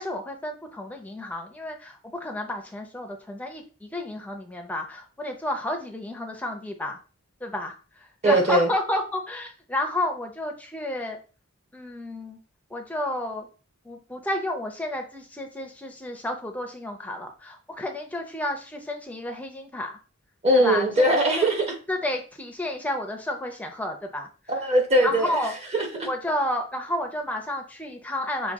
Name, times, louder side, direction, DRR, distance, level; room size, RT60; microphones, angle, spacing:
voice 1, 0.0-7.0 7.4-11.2 11.7-12.4 12.7-13.5 13.8-20.0 20.5-21.0 21.4-21.5 21.9-24.3 25.0-25.5 26.0-28.5, left 1 dB, 5° left, 0.5 m, -31 dB
voice 2, 8.2-8.7 20.4-21.7 24.5-25.4 25.7-26.1, right 1 dB, 30° right, 0.9 m, -21 dB
5.8 x 2.3 x 3.5 m
head